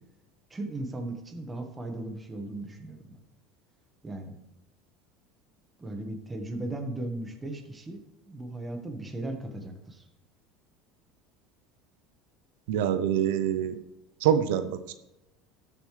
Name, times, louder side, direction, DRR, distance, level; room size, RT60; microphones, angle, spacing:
voice 1, 0.5-3.2 4.0-4.4 5.8-10.0, right 2 dB, 15° right, 4 dB, 1.4 m, -37 dB
voice 2, 12.7-13.8 14.2-14.9, right 9 dB, 85° right, 11 dB, 0.7 m, -25 dB
13.5 x 7.2 x 3.3 m, 0.93 s
supercardioid pair, 140°, 0 cm